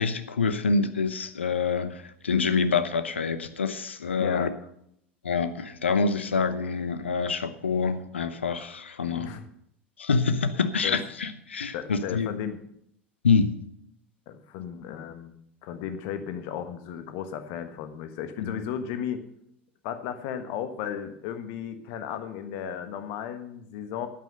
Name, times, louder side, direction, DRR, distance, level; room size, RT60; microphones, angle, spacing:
voice 1, 0.0-4.5 5.2-9.3 10.0-12.3 13.2-13.5 18.4-18.6, left 5 dB, 75° left, 12 dB, 0.9 m, -26 dB
voice 2, 9.1-9.4 10.8-11.0 11.7-12.6 14.3-15.3 15.6-19.2 19.8-24.1, left 9 dB, 50° left, 9 dB, 1.4 m, -35 dB
11.0 x 9.4 x 6.5 m, 0.73 s
figure-of-eight pair, 75°, 6 cm